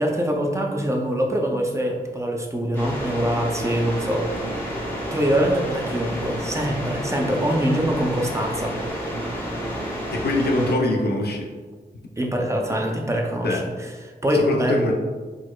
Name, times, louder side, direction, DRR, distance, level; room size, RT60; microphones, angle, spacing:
voice 1, 0.0-4.3 5.1-8.7 12.2-13.9 14.2-14.8, equal, 15° right, 0 dB, 0.5 m, -24 dB
sound 1, 2.7-10.8, equal, 15° left, 1.2 m, -30 dB
voice 2, 10.1-11.5 13.4-13.6 14.3-14.9, left 1 dB, 75° left, 1 dB, 0.6 m, -23 dB
4.6 x 4.1 x 2.3 m, 1.4 s
wide cardioid pair, 125°, 17 cm